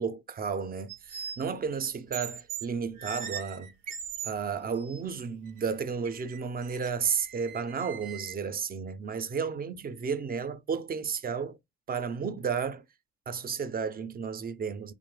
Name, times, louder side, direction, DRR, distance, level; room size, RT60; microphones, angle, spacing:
voice 1, 0.0-3.7 4.2-11.6 11.9-12.8 13.3-14.9, right 6 dB, 30° right, 0.4 m, -32 dB
sound 1, 0.9-1.4 2.1-2.7 3.0-4.3 4.8-5.0 5.5-5.6 6.0-8.3, right 7 dB, 85° right, 0.5 m, -40 dB
2.9 x 2.0 x 3.0 m
cardioid pair, 90°, 30 cm